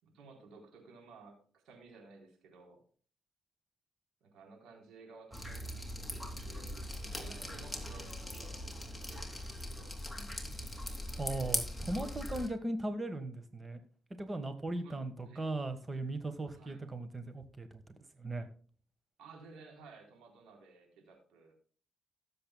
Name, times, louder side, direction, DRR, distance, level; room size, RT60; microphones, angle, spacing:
voice 1, 0.0-2.8 4.2-5.6 5.9-6.1 6.4-10.5 10.8-11.0 14.8-15.0 15.2-15.5 16.5-16.8 19.2-21.5, right 4 dB, 90° right, 2 dB, 3.8 m, -56 dB
Drip, 5.3-12.5, left 1 dB, ahead, 3.0 m, -40 dB
voice 2, 11.2-13.8 14.2-17.8 18.2-18.5, right 2 dB, 30° right, 8 dB, 1.4 m, -38 dB
18.0 x 7.8 x 2.3 m, 0.43 s
cardioid pair, 70°, 0 cm